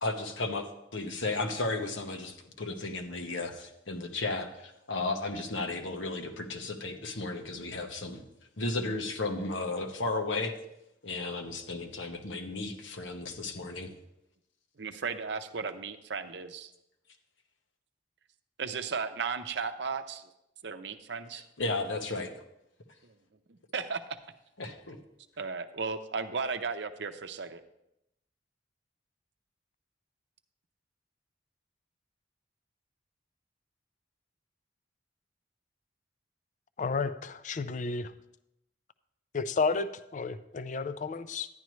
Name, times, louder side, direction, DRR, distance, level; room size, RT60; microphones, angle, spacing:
voice 1, 0.0-8.2 8.6-10.5 11.0-13.9 21.6-22.4 24.6-25.0, left 2 dB, 85° left, 5 dB, 1.2 m, -34 dB
voice 2, 14.8-16.7 18.6-20.3 20.6-21.5 23.0-23.1 23.5-24.0 25.4-27.6, right 5 dB, 65° right, 9 dB, 0.6 m, -35 dB
voice 3, 36.8-38.1 39.3-41.5, left 4 dB, 40° left, 12 dB, 0.4 m, -32 dB
11.0 x 10.5 x 3.2 m, 0.83 s
head